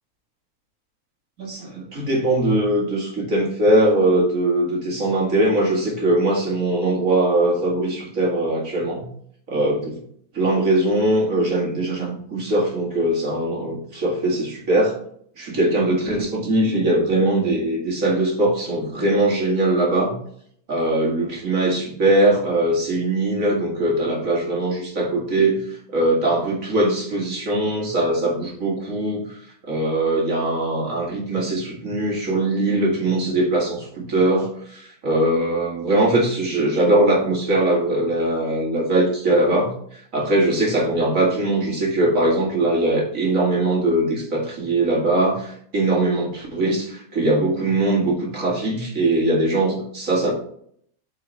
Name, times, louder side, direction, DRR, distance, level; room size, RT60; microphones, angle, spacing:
voice 1, 1.4-9.1 9.5-10.0 10.3-15.0 15.4-20.1 20.7-50.3, right 1 dB, 30° right, -2 dB, 1.8 m, -21 dB
8.2 x 4.8 x 3.5 m, 0.64 s
omnidirectional pair, 3.5 m